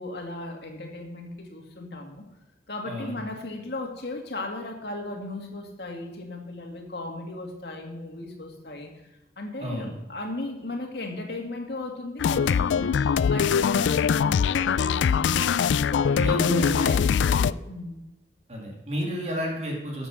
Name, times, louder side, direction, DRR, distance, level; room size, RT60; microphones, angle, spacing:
voice 1, 0.0-2.3 2.7-8.9 9.4-15.4 15.7-18.0, left 2 dB, 60° left, 2 dB, 2.2 m, -36 dB
voice 2, 9.6-9.9 16.2-16.9 18.5-20.1, equal, 40° right, -1 dB, 2.4 m, -30 dB
sound 1, 12.2-17.5, left 7 dB, 90° left, 0.3 m, -22 dB
12.5 x 7.4 x 6.4 m, 0.97 s
head